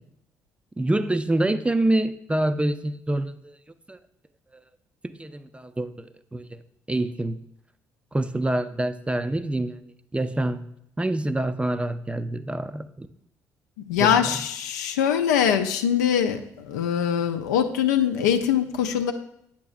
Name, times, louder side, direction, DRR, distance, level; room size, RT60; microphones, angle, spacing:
voice 1, 0.8-3.6 3.9-4.0 5.0-6.5 6.9-7.4 8.1-10.7 11.0-13.1 14.0-14.2, right 1 dB, 10° right, 12 dB, 0.4 m, -26 dB
voice 2, 13.9-19.1, left 9 dB, 85° left, 7 dB, 0.4 m, -23 dB
8.5 x 5.9 x 2.4 m, 0.74 s
hypercardioid pair, 50°, 9 cm